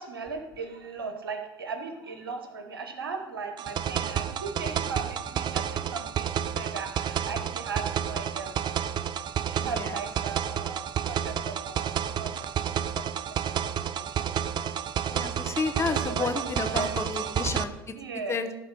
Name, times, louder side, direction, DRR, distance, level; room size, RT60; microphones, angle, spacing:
voice 1, 0.0-8.8 9.4-12.7 13.6-14.3 15.9-17.3 17.9-18.4, right 4 dB, 85° right, 6 dB, 1.1 m, -38 dB
sound 1, 3.6-17.6, right 9 dB, 40° right, 0.5 m, -30 dB
voice 2, 9.6-9.9 15.1-17.7 18.3-18.5, left 4 dB, 20° left, 7 dB, 1.0 m, -31 dB
12.0 x 4.1 x 5.6 m, 0.96 s
hypercardioid pair, 75°, 12 cm